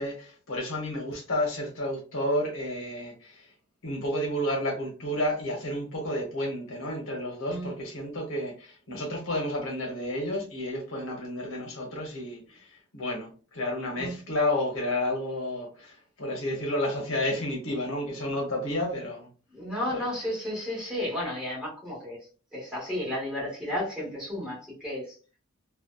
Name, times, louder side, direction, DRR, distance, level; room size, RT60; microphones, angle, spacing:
voice 1, 0.0-3.5 3.8-19.3 19.9-20.0, left 1 dB, 65° left, 0.7 m, -31 dB
voice 2, 19.5-22.2 22.5-25.0, left 1 dB, 5° right, 1.2 m, -32 dB
2.6 x 2.1 x 2.2 m
head